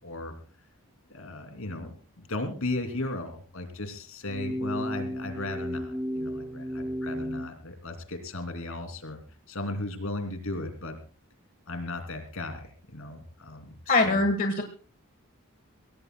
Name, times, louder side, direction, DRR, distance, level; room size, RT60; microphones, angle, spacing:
voice 1, 0.0-0.3 1.1-9.2 9.5-11.0 11.7-14.2, left 2 dB, 70° left, 6 dB, 3.0 m, -36 dB
sound 1, 4.2-7.5, equal, 10° right, 0.7 m, -33 dB
voice 2, 13.9-14.6, left 2 dB, 40° left, 5 dB, 1.4 m, -23 dB
24.0 x 17.0 x 2.3 m, 0.35 s
head